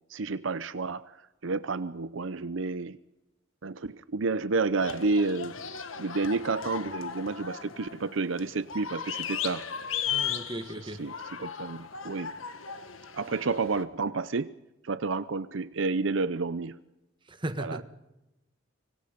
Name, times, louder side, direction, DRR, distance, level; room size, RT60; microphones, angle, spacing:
voice 1, 0.1-1.1 1.4-3.0 3.6-5.6 6.0-9.7 10.8-11.1 11.4-12.3 13.1-14.5 14.8-16.8 17.6-17.8, right 3 dB, 65° right, 14 dB, 0.7 m, -30 dB
sound 1, 4.8-13.8, left 7 dB, 85° left, 1.8 m, -37 dB
voice 2, 10.1-11.0 17.3-17.8, right 1 dB, 25° right, 9 dB, 1.5 m, -36 dB
25.5 x 24.0 x 5.2 m, 0.97 s
head